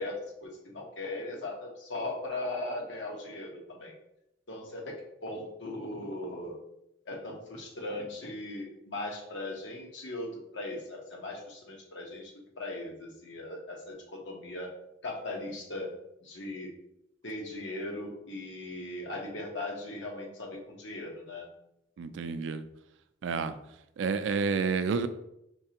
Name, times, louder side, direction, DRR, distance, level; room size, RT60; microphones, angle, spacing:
voice 1, 0.0-3.9 4.5-6.6 7.1-14.7 15.0-15.9 16.2-16.7 17.2-21.5, left 2 dB, 80° left, -1 dB, 1.0 m, -38 dB
voice 2, 22.0-22.6 23.2-23.6 24.0-25.1, right 5 dB, 85° right, 11 dB, 0.3 m, -29 dB
4.5 x 3.2 x 2.8 m, 0.83 s
head